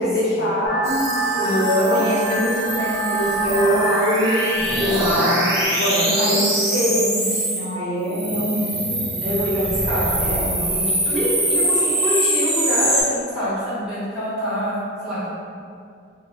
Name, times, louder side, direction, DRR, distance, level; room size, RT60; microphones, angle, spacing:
voice 1, 0.0-5.0 5.7-9.0 10.2-10.5, equal, 55° left, -7 dB, 0.5 m, -24 dB
sound 1, 0.7-5.7, right 2 dB, 30° left, 0.9 m, -26 dB
sound 2, 0.8-7.7 8.1-13.0, right 1 dB, 55° right, 0.7 m, -24 dB
voice 2, 1.4-2.0 4.8-6.4 9.2-15.3, equal, 5° right, -13 dB, 0.7 m, -24 dB
2.1 x 2.1 x 3.1 m, 2.3 s
head